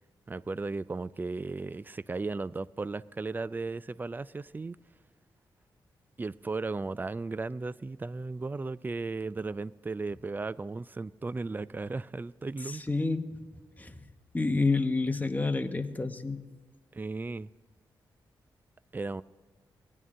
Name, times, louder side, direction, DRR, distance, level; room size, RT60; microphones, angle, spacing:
voice 1, 0.3-4.8 6.2-12.8 16.9-17.5 18.9-19.2, right 3 dB, 20° right, 0.4 m, -35 dB
voice 2, 12.6-13.4 13.8-14.0 14.3-16.4, left 3 dB, 20° left, 1.0 m, -29 dB
17.5 x 11.0 x 3.7 m
cardioid pair, 75°, 8 cm